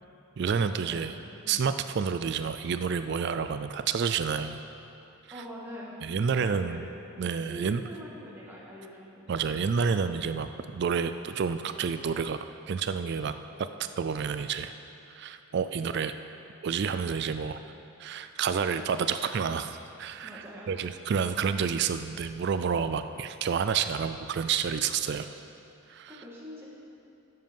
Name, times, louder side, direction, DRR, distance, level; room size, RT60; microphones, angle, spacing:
voice 1, 0.4-1.1 1.5-4.6 6.0-6.8 7.2-7.8 9.3-12.4 12.7-13.3 14.0-14.7 15.1-16.1 16.6-17.6 18.0-25.4 25.9-26.2, right 6 dB, 50° right, 10 dB, 0.3 m, -29 dB
voice 2, 5.3-5.9 6.3-6.8 7.2-9.6 20.2-20.7 25.8-26.6, equal, 10° right, -5 dB, 1.8 m, -45 dB
12.5 x 7.8 x 5.3 m, 2.7 s
head